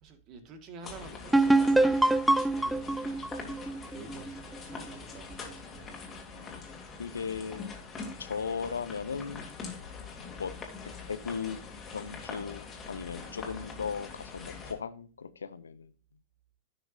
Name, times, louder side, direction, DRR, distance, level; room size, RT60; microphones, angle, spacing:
voice 1, 0.0-2.1 2.5-3.2 3.8-5.9, right 4 dB, 35° right, 1.6 m, -49 dB
sound 1, 0.8-14.7, left 4 dB, 20° left, 2.5 m, -44 dB
sound 2, 1.3-4.9, right 2 dB, 5° right, 0.4 m, -25 dB
voice 2, 6.3-6.6 7.0-7.8 8.2-9.5 10.4-10.5 10.8-11.6 11.9-15.9, left 6 dB, 70° left, 0.7 m, -37 dB
15.0 x 6.0 x 2.6 m
figure-of-eight pair, 90°, 0 cm